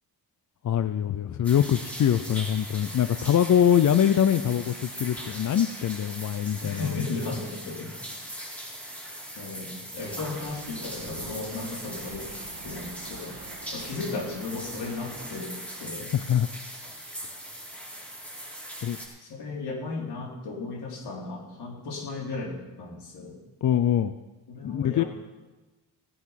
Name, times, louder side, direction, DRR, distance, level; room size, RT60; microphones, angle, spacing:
voice 1, 0.6-7.0 16.1-16.5 18.8-19.0 23.6-24.2 24.6-25.0, left 9 dB, 50° left, 11 dB, 0.6 m, -23 dB
sound 1, 1.4-19.1, equal, 5° left, 4.9 m, -40 dB
voice 2, 6.6-7.9 8.8-9.0 9.4-12.3 12.6-13.4 13.7-15.5 15.8-16.1 19.2-23.4 24.5-25.1, left 3 dB, 75° left, -1 dB, 3.7 m, -35 dB
sound 2, 10.0-15.4, right 7 dB, 60° right, 1.1 m, -46 dB
17.0 x 9.3 x 5.9 m, 1.1 s
cardioid pair, 100°, 39 cm